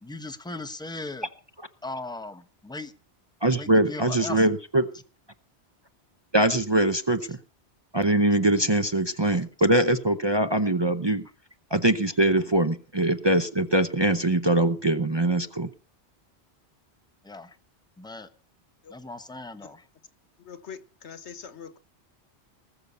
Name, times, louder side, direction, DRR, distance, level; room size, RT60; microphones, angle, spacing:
voice 1, 0.0-1.3 1.8-2.9 3.5-4.5 17.2-17.6 18.0-18.3 18.9-19.8, left 2 dB, 5° left, 1.0 m, -38 dB
voice 2, 3.4-4.8 6.3-7.4 7.9-11.3 11.7-15.7, right 1 dB, 25° right, 0.7 m, -22 dB
voice 3, 20.5-20.8 21.0-21.8, left 7 dB, 80° left, 1.4 m, -41 dB
20.0 x 6.8 x 6.8 m
omnidirectional pair, 1.1 m